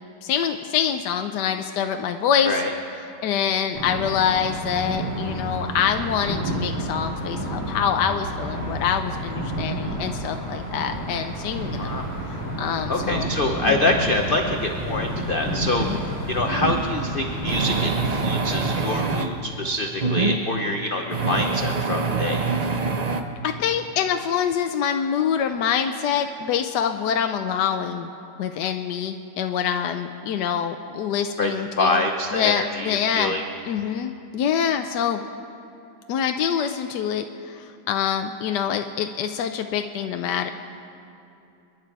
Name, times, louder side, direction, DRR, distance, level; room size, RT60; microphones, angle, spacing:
voice 1, 0.2-2.6 3.2-11.9 12.6-13.3 13.6-13.7 15.8-16.0 23.4-28.1 28.4-32.0 32.3-33.3 33.6-35.2 36.1-40.5, left 8 dB, 75° left, 6 dB, 1.2 m, -25 dB
sound 1, 3.7-18.9, right 1 dB, 40° right, 4.4 m, -30 dB
voice 2, 12.9-22.4 31.4-33.4, left 2 dB, 45° left, 3 dB, 0.7 m, -25 dB
sound 2, 16.6-16.8 17.5-19.3 20.0-20.4 21.1-23.2, right 4 dB, 90° right, 0.3 m, -25 dB
29.0 x 10.5 x 4.7 m, 2.7 s
omnidirectional pair, 2.0 m